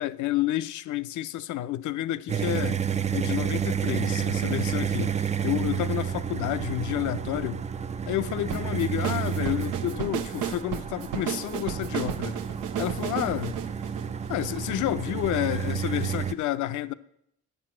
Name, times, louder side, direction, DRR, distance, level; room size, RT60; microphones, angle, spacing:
voice 1, 0.0-2.8 3.1-7.6 8.1-12.4 12.8-13.6 14.3-16.9, left 13 dB, 75° left, 0.6 m, -30 dB
sound 1, 2.3-16.3, right 8 dB, 25° right, 0.4 m, -30 dB
sound 2, 8.5-14.8, right 9 dB, 85° right, 0.7 m, -33 dB
8.4 x 6.2 x 7.5 m
cardioid pair, 90°, 30 cm